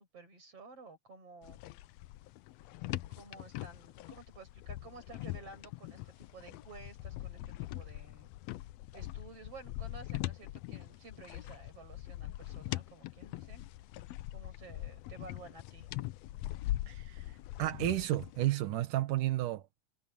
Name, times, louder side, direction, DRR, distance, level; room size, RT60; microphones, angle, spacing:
voice 1, 0.0-1.6 3.1-8.3 8.9-13.6 14.3-15.9, right 3 dB, 45° right, 8.6 m, -53 dB
sound 1, 1.4-18.5, left 16 dB, 85° left, 1.5 m, -42 dB
voice 2, 16.9-17.2 17.6-19.6, right 15 dB, 85° right, 2.8 m, -32 dB
omnidirectional pair, 3.6 m